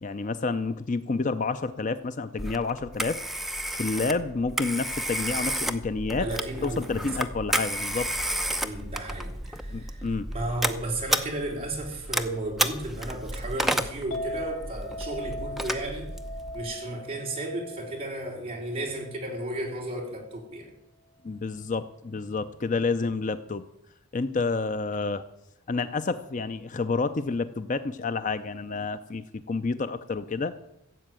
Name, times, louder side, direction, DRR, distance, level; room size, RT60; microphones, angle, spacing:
voice 1, 0.0-3.2 3.8-6.3 6.6-8.1 9.7-10.3 21.2-23.6 24.1-25.2 25.7-30.5, left 4 dB, 35° left, 0.5 m, -29 dB
Telephone, 2.4-16.6, right 1 dB, ahead, 0.7 m, -32 dB
voice 2, 6.2-7.1 8.6-16.1 16.5-20.7, right 1 dB, 25° right, 3.7 m, -34 dB
Chink clink, 14.1-20.4, equal, 60° left, 2.6 m, -40 dB
15.5 x 7.8 x 9.0 m
head